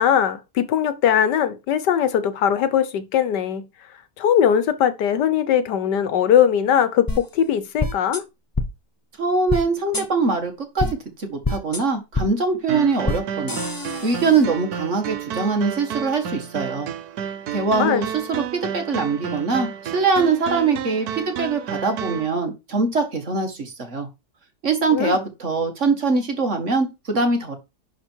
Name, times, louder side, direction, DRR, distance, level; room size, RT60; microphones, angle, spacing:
voice 1, 0.0-3.7 4.2-8.2 17.8-18.0 24.9-25.2, left 9 dB, 85° left, 1.5 m, -20 dB
sound 1, 7.1-7.2 7.8-8.2 8.5-8.7 9.5-9.6 9.9-10.0 10.8-10.9 11.4-11.8 12.1-12.3 13.0-13.2 13.5-14.4, left 2 dB, 20° left, 0.6 m, -25 dB
voice 2, 9.2-10.9 11.2-13.6 14.0-16.9 17.5-24.1 24.6-27.6, right 4 dB, 45° right, 1.9 m, -22 dB
sound 2, 12.7-22.3, right 9 dB, 70° right, 1.3 m, -31 dB
11.0 x 4.3 x 4.5 m
omnidirectional pair, 1.8 m